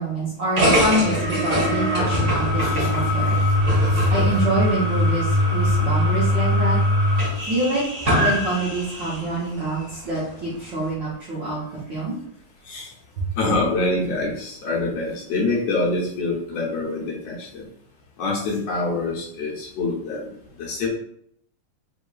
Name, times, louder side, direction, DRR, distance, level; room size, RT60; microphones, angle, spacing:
voice 1, 0.0-3.4 4.1-6.8 7.5-7.8 8.2-11.6 11.9-12.2, right 1 dB, 70° right, -6 dB, 1.0 m, -26 dB
sound 1, 0.6-9.3, equal, 35° right, 1.4 m, -21 dB
voice 2, 13.4-17.6 18.2-20.3 20.6-20.9, left 2 dB, 70° left, -3 dB, 1.7 m, -25 dB
4.6 x 3.6 x 2.4 m, 0.67 s
omnidirectional pair, 3.5 m